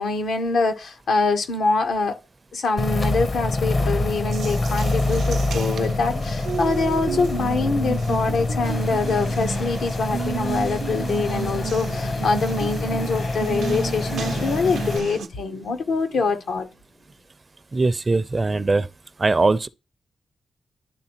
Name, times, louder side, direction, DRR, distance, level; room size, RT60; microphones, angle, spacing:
voice 1, 0.0-2.2 2.5-16.7, left 3 dB, 80° left, 0.8 m, -24 dB
sound 1, 2.8-15.0, left 2 dB, 50° left, 0.7 m, -26 dB
Water tap faucet, 4.3-15.3, right 7 dB, 90° right, 0.6 m, -33 dB
sound 2, 8.6-15.2, left 3 dB, 65° left, 1.3 m, -37 dB
voice 2, 17.7-18.9 19.2-19.7, right 3 dB, 35° right, 0.4 m, -20 dB
10.0 x 3.5 x 2.9 m
cardioid pair, 65°, 0 cm